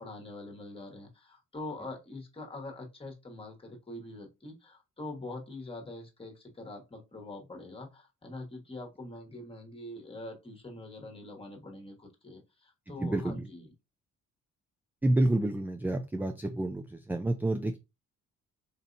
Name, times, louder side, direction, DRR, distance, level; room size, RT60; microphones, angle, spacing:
voice 1, 0.0-13.7, left 2 dB, 20° left, 1 dB, 1.3 m, -44 dB
voice 2, 13.0-13.5 15.0-17.8, right 1 dB, 5° right, 7 dB, 0.3 m, -29 dB
4.2 x 2.6 x 2.5 m, 0.25 s
cardioid pair, 90°, 30 cm